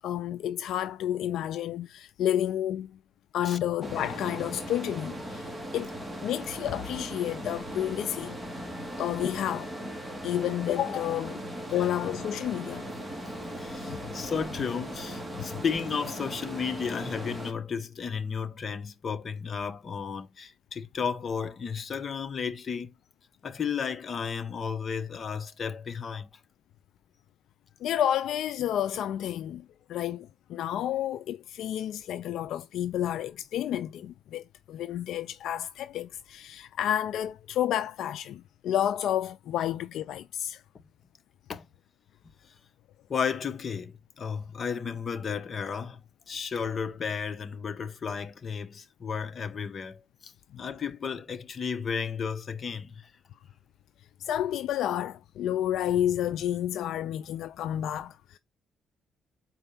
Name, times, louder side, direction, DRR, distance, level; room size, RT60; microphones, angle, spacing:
voice 1, 0.0-2.9 3.3-5.5 5.7-5.9 6.2-8.4 9.0-9.7 10.2-11.4 11.7-12.8 13.9-14.0 15.4-15.6 27.8-40.6 54.2-58.4, left 11 dB, 80° left, 0.4 m, -30 dB
sound 1, 3.8-17.5, equal, 10° right, 1.9 m, -38 dB
voice 2, 13.6-22.9 23.4-26.4 40.7-40.8 41.5-41.6 42.2-42.3 43.1-53.1, left 6 dB, 45° left, 1.0 m, -33 dB
4.6 x 4.2 x 5.4 m
cardioid pair, 90°, 0 cm